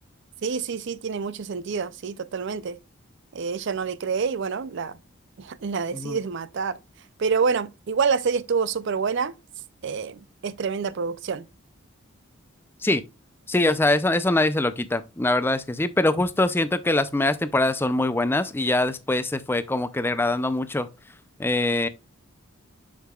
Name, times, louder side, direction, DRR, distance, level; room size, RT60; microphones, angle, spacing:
voice 1, 0.4-2.8 3.3-5.0 5.4-6.8 7.2-9.3 9.8-11.5, right 5 dB, 55° right, 0.4 m, -27 dB
voice 2, 13.5-20.9 21.4-21.9, left 2 dB, 10° left, 0.4 m, -23 dB
6.7 x 6.5 x 2.3 m
head